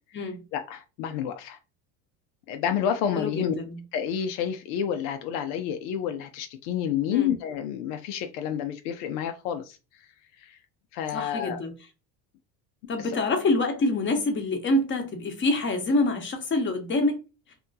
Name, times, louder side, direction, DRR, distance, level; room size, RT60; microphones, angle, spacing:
voice 1, 0.2-1.6 2.5-3.5 3.9-9.8 10.4-10.6 10.9-11.6 13.0-13.2, left 9 dB, 75° left, 0.6 m, -29 dB
voice 2, 3.1-3.8 7.1-7.3 11.1-11.7 12.9-17.2, left 2 dB, 25° left, 0.9 m, -26 dB
2.8 x 2.2 x 2.6 m
supercardioid pair, 90°, 45 cm